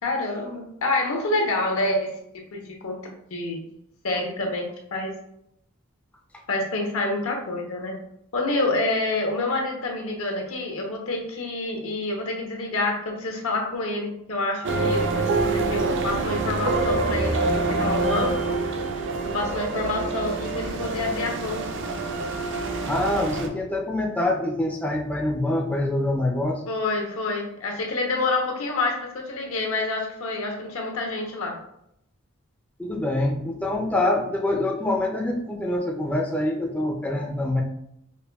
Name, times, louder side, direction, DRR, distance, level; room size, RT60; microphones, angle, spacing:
voice 1, 0.0-3.6 4.0-4.6 4.9-5.1 6.5-7.9 8.3-18.5 19.3-21.6 26.7-31.6, left 2 dB, 80° left, 1 dB, 0.8 m, -27 dB
sound 1, 14.6-23.5, right 3 dB, 60° right, 0.4 m, -26 dB
voice 2, 22.9-26.6 32.8-37.6, left 1 dB, 5° left, 0 dB, 0.3 m, -25 dB
5.2 x 2.2 x 2.2 m, 0.75 s
head